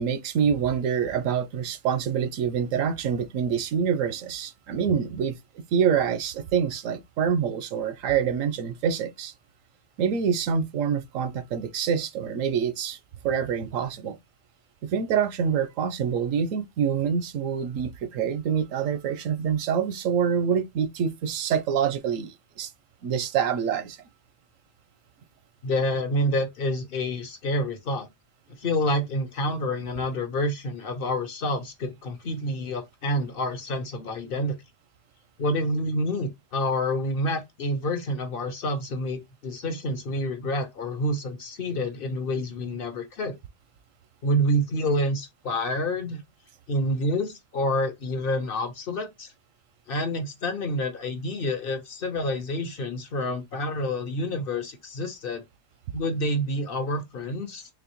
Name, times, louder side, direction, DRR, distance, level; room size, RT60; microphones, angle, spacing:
voice 1, 0.0-5.4 5.7-9.3 10.0-13.0 13.2-14.2 14.8-22.7 23.0-24.0, right 7 dB, 85° right, 1.0 m, -26 dB
voice 2, 25.6-28.1 28.6-34.6 35.4-43.3 44.2-46.2 46.7-49.3 49.9-55.4 55.9-57.7, equal, 50° left, 0.9 m, -28 dB
4.1 x 3.1 x 2.9 m
omnidirectional pair, 1.3 m